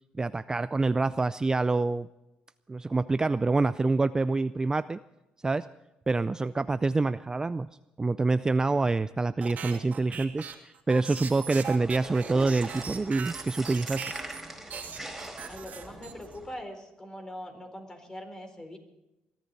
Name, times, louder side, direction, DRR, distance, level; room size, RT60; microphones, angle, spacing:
voice 1, 0.2-2.1 2.7-5.0 5.4-5.7 6.1-7.7 8.0-14.1, right 3 dB, 20° right, 14 dB, 0.4 m, -26 dB
sound 1, 9.4-14.4 14.7-16.4, right 7 dB, 55° right, 2.5 m, -39 dB
sound 2, 11.5-16.5, right 1 dB, 5° right, 4.6 m, -43 dB
voice 2, 15.5-18.8, equal, 20° left, 5 dB, 4.3 m, -42 dB
21.5 x 13.5 x 4.1 m, 0.96 s
cardioid pair, 90°, 3 cm